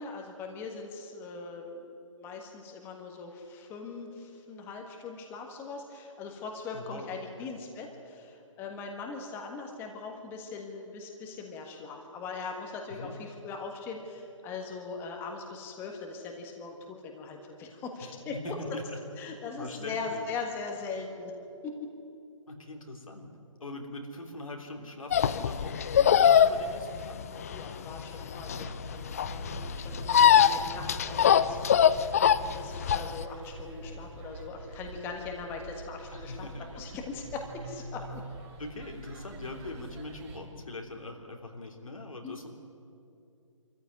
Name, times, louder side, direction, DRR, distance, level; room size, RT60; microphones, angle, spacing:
voice 1, 0.0-18.6 19.2-21.3 21.6-21.9 27.5-32.1 32.4-38.2 42.2-42.4, left 4 dB, 15° left, 2 dB, 1.6 m, -40 dB
voice 2, 6.7-7.1 7.4-7.5 13.0-13.1 18.0-19.0 19.6-20.2 22.5-23.3 23.6-27.2 28.5-28.9 29.6-30.0 36.1-36.8 38.6-42.5, left 2 dB, 90° left, 2 dB, 3.5 m, -42 dB
sound 1, 25.1-33.2, left 9 dB, 30° left, 0.5 m, -23 dB
sound 2, 28.3-40.4, right 2 dB, 25° right, 3.0 m, -45 dB
23.5 x 14.5 x 9.6 m, 2.6 s
hypercardioid pair, 155°, 17 cm